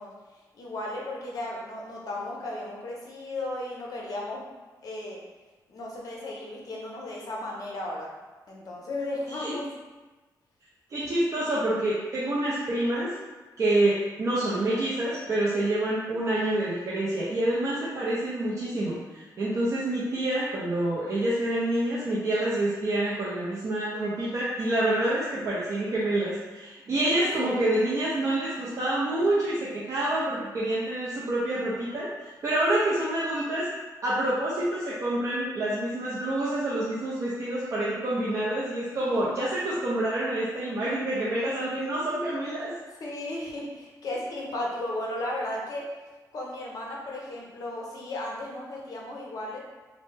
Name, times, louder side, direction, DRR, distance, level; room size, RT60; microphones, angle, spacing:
voice 1, 0.0-4.4 4.8-5.2 5.7-8.1 8.5-9.7 11.1-11.2 27.1-27.7 39.0-39.3 43.0-45.8 46.3-49.6, left 1 dB, 55° left, -2 dB, 0.6 m, -35 dB
voice 2, 10.9-13.1 13.6-33.7 34.0-42.7, right 1 dB, 40° right, -8 dB, 0.5 m, -27 dB
3.1 x 2.0 x 3.1 m, 1.3 s
wide cardioid pair, 170°, 7 cm